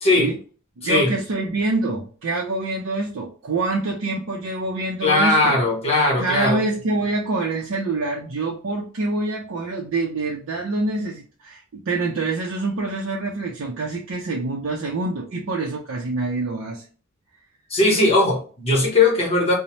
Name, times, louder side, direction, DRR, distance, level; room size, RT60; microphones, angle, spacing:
voice 1, 0.8-5.5 6.2-16.8, right 2 dB, 60° right, 0.5 m, -26 dB
voice 2, 5.0-6.6 17.7-19.5, left 2 dB, 25° left, 0.9 m, -19 dB
2.7 x 2.0 x 3.0 m
head